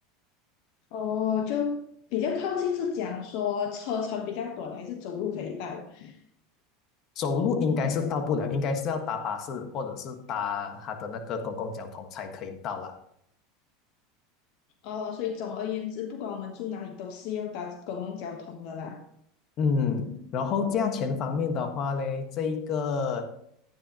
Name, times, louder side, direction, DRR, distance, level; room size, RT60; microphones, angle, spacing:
voice 1, 0.9-1.8 2.1-6.2 14.8-19.0, left 7 dB, 65° left, 5 dB, 1.2 m, -32 dB
voice 2, 7.2-13.0 19.6-23.3, left 5 dB, 50° left, 7 dB, 1.5 m, -29 dB
12.0 x 9.9 x 3.0 m, 0.72 s
hypercardioid pair, 100°, 0 cm